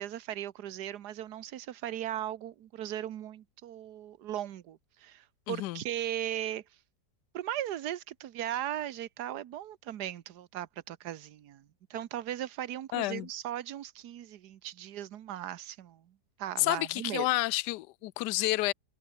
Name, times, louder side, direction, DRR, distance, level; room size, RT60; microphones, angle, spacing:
voice 1, 0.0-6.6 7.3-16.1 16.4-17.3, right 12 dB, 70° right, 1.5 m, -38 dB
voice 2, 5.5-5.8 12.9-13.3 16.6-18.7, left 18 dB, 80° left, 1.2 m, -30 dB
omnidirectional pair, 1.8 m